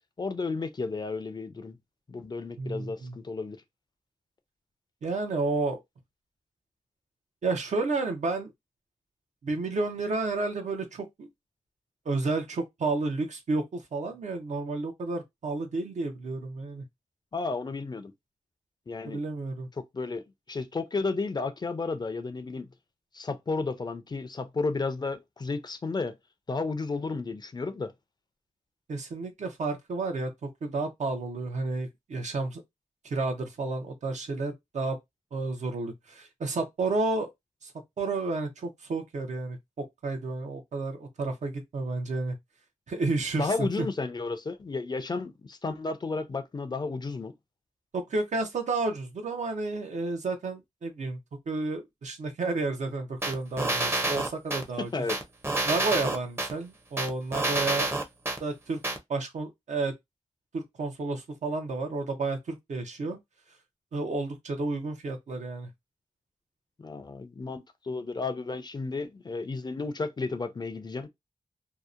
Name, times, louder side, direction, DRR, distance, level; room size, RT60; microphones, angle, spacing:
voice 1, 0.2-1.8 2.1-3.6 17.3-18.1 18.9-19.2 19.9-20.2 20.5-22.7 23.1-26.1 26.5-27.9 43.3-47.3 54.8-55.2 66.8-71.1, left 3 dB, 35° left, 0.4 m, -32 dB
voice 2, 2.6-3.2 5.0-5.8 7.4-8.5 9.4-11.3 12.1-16.8 19.0-19.7 28.9-32.6 33.0-35.0 35.3-37.3 37.6-37.7 38.0-42.4 42.9-43.9 47.9-51.2 51.5-54.9 55.7-57.9 58.4-58.8 59.1-59.9 60.5-63.2 63.9-65.7, right 3 dB, 70° right, 0.6 m, -31 dB
sound 1, 53.2-54.6 55.1-56.5 57.0-58.4 58.8-59.0, right 2 dB, 20° right, 0.6 m, -28 dB
2.7 x 2.0 x 2.4 m
wide cardioid pair, 75°, 13 cm